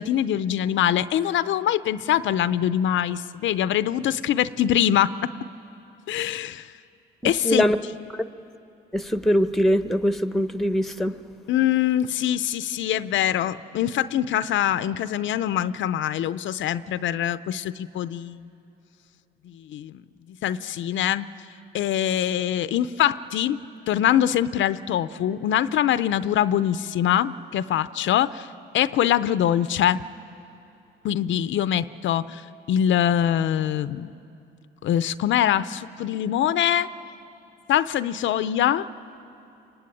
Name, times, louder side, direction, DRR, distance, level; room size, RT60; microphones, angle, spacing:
voice 1, 0.0-5.3 6.1-6.7 7.2-7.6 11.5-18.4 19.5-20.0 20.4-21.3 21.7-23.6 23.9-28.5 28.7-30.0 31.0-34.1 34.8-36.9 37.7-38.9, left 11 dB, 75° left, 14 dB, 0.6 m, -23 dB
voice 2, 7.2-7.8 8.1-8.2 8.9-11.2, equal, ahead, 10 dB, 1.0 m, -22 dB
25.5 x 23.5 x 9.8 m, 2.8 s
cardioid pair, 90°, 20 cm